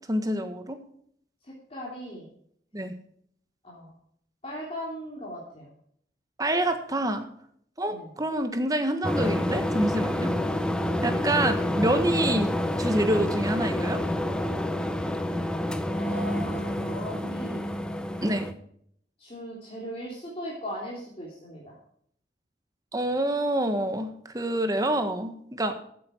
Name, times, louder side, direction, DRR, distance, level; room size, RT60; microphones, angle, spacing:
voice 1, 0.1-0.8 2.7-2.9 6.4-7.2 7.8-10.3 11.0-12.5 12.8-14.0 18.2-18.5 22.9-25.7, right 1 dB, 20° right, 7 dB, 1.5 m, -27 dB
voice 2, 1.4-2.3 3.6-3.9 4.4-5.7 7.9-8.1 15.9-17.7 19.2-21.8, equal, 35° left, -4 dB, 3.3 m, -38 dB
sound 1, 9.0-18.5, left 1 dB, 5° left, 0.8 m, -28 dB
14.5 x 8.7 x 4.5 m, 0.66 s
head